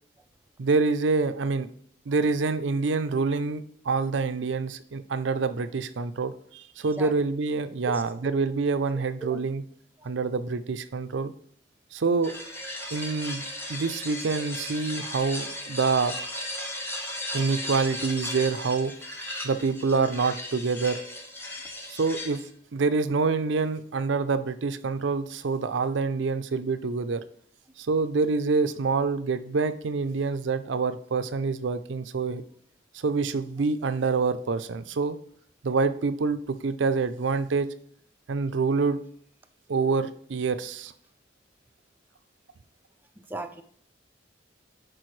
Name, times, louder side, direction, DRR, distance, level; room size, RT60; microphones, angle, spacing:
voice 1, 0.6-1.7 2.1-9.6 10.0-11.3 11.9-12.3 12.9-13.4 13.7-16.2 17.3-18.9 19.4-21.0 21.9-22.4 22.7-27.2 27.8-32.4 32.9-35.2 35.6-37.7 38.3-39.0 39.7-40.9, right 4 dB, 70° right, 11 dB, 0.5 m, -26 dB
voice 2, 7.9-8.3 9.2-9.4 10.0-10.1 19.4-19.5 43.2-43.6, right 2 dB, 10° right, 6 dB, 0.4 m, -38 dB
sound 1, 12.2-22.5, left 1 dB, 10° left, 0.8 m, -36 dB
11.0 x 4.5 x 3.2 m, 0.63 s
head